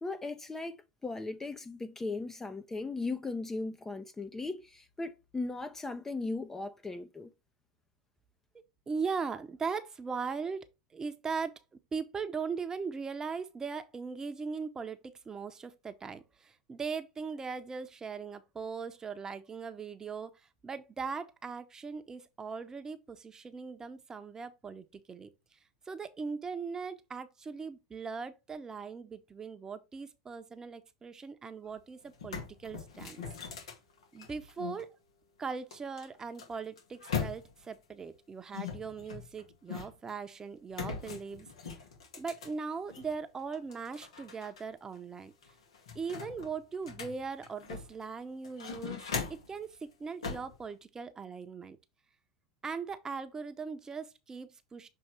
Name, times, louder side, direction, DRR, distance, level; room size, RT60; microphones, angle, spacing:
voice 1, 0.0-0.8 1.0-7.3, left 3 dB, 15° left, 0.6 m, -37 dB
voice 2, 8.9-10.7 10.9-11.6 11.9-20.3 20.6-25.3 25.9-33.2 34.1-34.9 35.4-41.5 42.2-45.3 45.9-51.8 52.6-54.9, right 5 dB, 20° right, 0.8 m, -39 dB
sound 1, 31.7-31.8 32.1-34.8 35.7-37.7 38.5-40.1 40.7-43.1 43.5-44.6 44.9-45.0 45.4-48.0 48.4-49.6 50.2-50.5, left 6 dB, 85° left, 1.9 m, -40 dB
6.7 x 3.1 x 4.5 m
hypercardioid pair, 105°, 3 cm